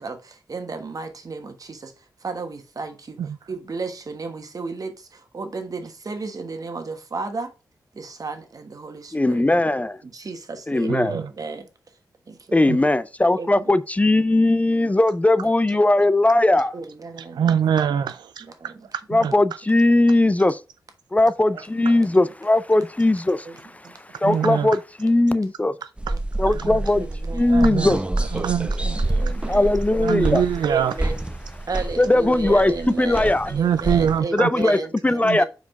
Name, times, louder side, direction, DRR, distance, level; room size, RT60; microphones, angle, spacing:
voice 1, 0.0-1.9 2.2-3.2 3.5-7.5 7.9-9.5 10.0-11.7 12.3-12.7 13.4-13.7 15.7-15.8 16.7-17.4 17.8-17.9 18.4-18.8 19.2-19.3 21.5-22.1 23.4-23.6 23.8-24.0 25.2-25.4 26.1-26.2 26.9-27.9 28.4-30.3 30.6-31.2 31.7-35.5, right 4 dB, 55° right, 1.3 m, -34 dB
voice 2, 9.1-10.0 10.7-11.1 12.5-16.8 19.1-20.6 21.1-23.5 24.2-25.7 26.4-27.0 27.3-28.0 29.5-30.4 32.0-32.7 33.0-33.5 34.3-35.4, left 2 dB, 20° left, 0.5 m, -19 dB
voice 3, 10.9-11.2 12.7-12.8 17.3-18.7 19.1-19.3 24.2-24.7 26.4-26.8 27.5-27.9 28.3-29.2 30.0-30.9 33.5-34.5 35.2-35.4, right 8 dB, 85° right, 0.4 m, -24 dB
sound 1, 26.0-34.2, right 2 dB, 15° right, 0.8 m, -27 dB
4.8 x 4.4 x 5.3 m
cardioid pair, 50°, 7 cm